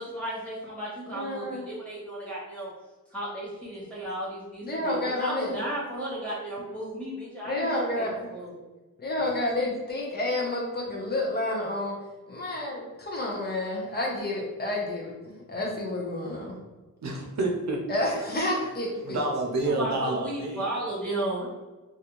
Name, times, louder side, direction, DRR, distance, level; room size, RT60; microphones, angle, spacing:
voice 1, 0.0-2.7 3.1-8.5 19.6-21.5, right 1 dB, 5° left, -8 dB, 1.0 m, -34 dB
voice 2, 1.1-1.7 4.6-5.5 7.4-8.3 9.0-12.0 12.3-16.6 17.9-19.2, left 1 dB, 30° left, -2 dB, 0.6 m, -30 dB
voice 3, 17.0-17.8 19.0-20.9, right 2 dB, 55° right, 1 dB, 0.6 m, -29 dB
2.5 x 2.2 x 2.9 m, 1.2 s
wide cardioid pair, 145°, 34 cm